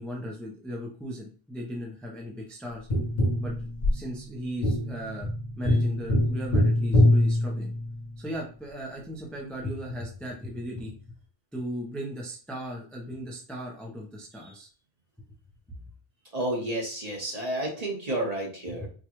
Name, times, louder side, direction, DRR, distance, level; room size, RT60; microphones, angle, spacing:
voice 1, 0.0-2.9 3.4-5.3 5.6-7.7 8.2-10.9 11.5-14.7 15.7-15.8 18.7-18.9, equal, ahead, -2 dB, 0.5 m, -37 dB
Tap, 2.9-8.2 10.8-10.9, left 1 dB, 50° left, 1.0 m, -24 dB
voice 2, 16.3-18.9, right 1 dB, 40° right, -2 dB, 1.2 m, -31 dB
4.6 x 2.3 x 3.0 m, 0.39 s
omnidirectional pair, 1.1 m